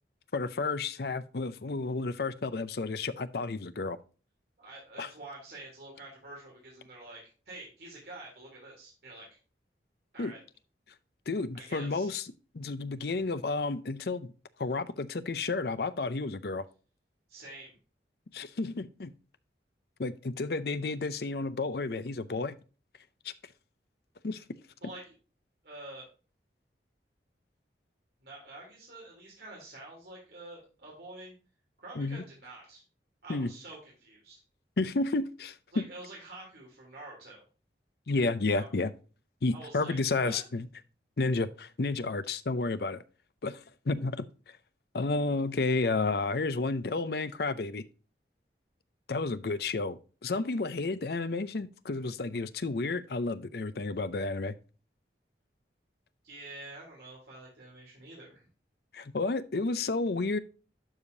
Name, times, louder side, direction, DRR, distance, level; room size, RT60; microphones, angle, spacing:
voice 1, 0.3-4.0 5.0-5.1 10.2-10.3 11.3-12.2 12.5-14.3 14.6-16.6 18.3-19.1 20.0-22.6 23.2-23.3 24.2-24.4 32.0-32.2 33.3-33.5 34.8-35.8 38.1-38.9 39.4-40.7 41.2-43.0 43.4-44.3 44.9-47.8 49.1-54.5 58.9-60.4, left 3 dB, 60° left, 0.6 m, -31 dB
voice 2, 4.6-9.3 10.1-10.4 11.5-12.1 17.3-17.8 24.8-25.1 25.6-26.1 28.2-31.3 31.8-32.8 33.2-34.4 35.7-37.4 38.5-38.7 39.5-40.4 56.2-58.5, right 2 dB, 60° right, 3.3 m, -47 dB
12.0 x 5.0 x 2.6 m
head